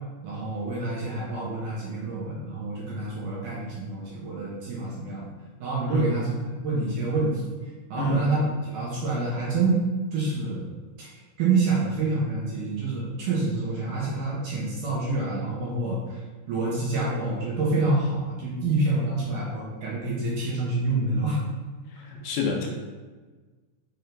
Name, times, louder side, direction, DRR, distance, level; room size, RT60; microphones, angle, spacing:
voice 1, 0.2-5.3 5.6-6.3 6.6-7.5 7.9-9.8 10.1-10.7 11.0-11.1 11.4-16.2 16.5-21.4, right 3 dB, 65° right, -6 dB, 2.3 m, -27 dB
voice 2, 22.1-22.7, left 2 dB, 75° left, 0 dB, 2.7 m, -27 dB
6.8 x 3.7 x 4.5 m, 1.3 s
omnidirectional pair, 4.8 m